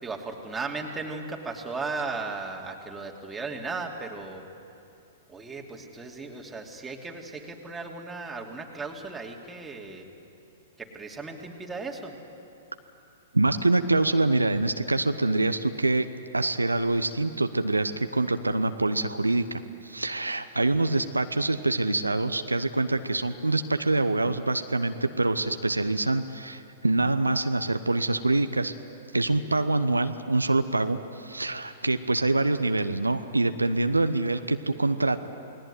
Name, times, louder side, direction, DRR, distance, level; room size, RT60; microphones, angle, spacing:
voice 1, 0.0-4.4 5.3-10.1 10.8-12.2, right 3 dB, 10° right, 1 dB, 2.8 m, -36 dB
voice 2, 13.3-16.1 16.3-28.7 29.1-35.3, right 2 dB, 85° right, 9 dB, 0.9 m, -25 dB
28.5 x 20.0 x 9.5 m, 2.8 s
figure-of-eight pair, 105°, 0 cm